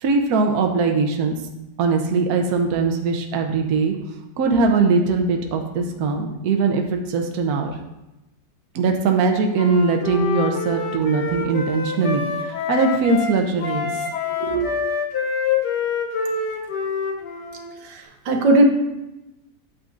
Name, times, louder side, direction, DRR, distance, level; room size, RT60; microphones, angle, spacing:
voice 1, 0.0-1.4 1.8-3.9 4.4-7.7 8.7-13.9 14.4-14.7, right 4 dB, 60° right, 3 dB, 1.2 m, -21 dB
Wind instrument woodwind instrument, 9.5-13.3 13.6-17.7, left 5 dB, 65° left, 1.3 m, -26 dB
voice 2, 17.8-18.6, right 2 dB, 80° right, 4 dB, 1.6 m, -18 dB
8.6 x 8.4 x 2.6 m, 0.96 s
omnidirectional pair, 2.0 m